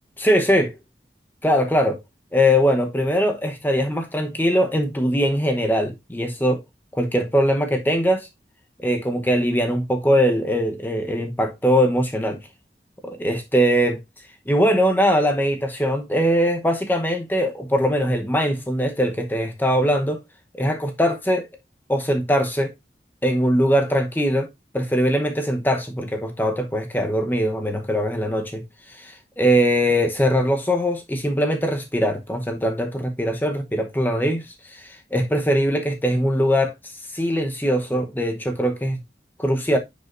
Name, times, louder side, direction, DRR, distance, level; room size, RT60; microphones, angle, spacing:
voice 1, 0.2-0.7 1.4-2.0 2.3-6.6 6.9-8.3 8.8-12.4 13.0-14.0 14.5-20.2 20.5-21.5 21.9-22.7 23.2-24.5 24.7-36.7 37.1-39.0 39.4-39.8, equal, 10° left, 0.8 m, -21 dB
9.8 x 5.3 x 2.5 m
head